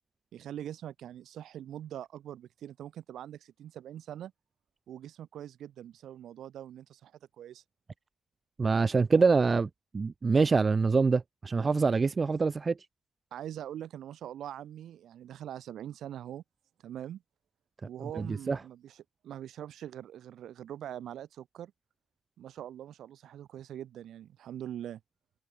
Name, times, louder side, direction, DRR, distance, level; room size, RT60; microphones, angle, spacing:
voice 1, 0.3-4.3 4.9-7.1 7.4-7.6 9.1-9.2 13.3-16.4 16.8-17.2 17.8-21.7 22.4-25.0, right 11 dB, 75° right, 2.8 m, -43 dB
voice 2, 8.6-9.7 9.9-12.8 18.2-18.6, right 4 dB, 35° right, 0.5 m, -25 dB
open air
cardioid pair, 75°, 0 cm